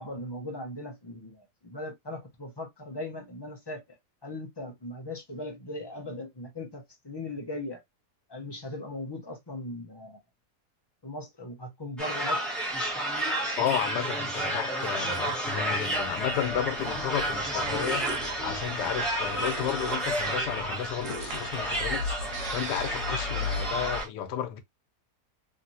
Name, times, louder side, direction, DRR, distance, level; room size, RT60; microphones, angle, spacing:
voice 1, 0.0-3.8 4.2-7.8 8.3-10.2 11.0-12.4, left 1 dB, 30° left, 0.4 m, -38 dB
sound 1, 12.0-24.1, right 1 dB, ahead, 0.7 m, -31 dB
voice 2, 13.6-18.1 18.4-22.2 22.5-24.6, left 9 dB, 90° left, 1.3 m, -32 dB
sound 2, 15.9-24.0, left 2 dB, 65° right, 1.2 m, -38 dB
3.1 x 2.8 x 2.7 m
omnidirectional pair, 1.7 m